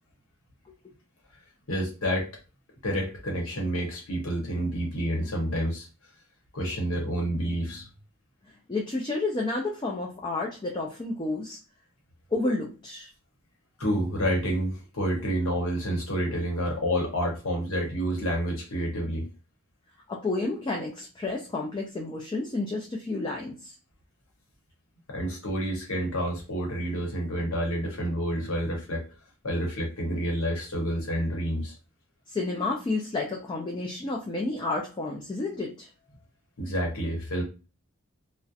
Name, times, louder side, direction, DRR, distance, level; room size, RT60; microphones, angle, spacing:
voice 1, 1.7-2.3 2.8-5.9 6.5-7.9 13.8-19.3 25.1-29.1 29.4-31.7 36.6-37.4, equal, 70° left, 0 dB, 0.9 m, -29 dB
voice 2, 8.7-11.6 12.3-13.1 20.1-23.7 32.3-35.9, left 2 dB, 20° left, -1 dB, 0.3 m, -30 dB
2.3 x 2.0 x 2.6 m, 0.32 s
head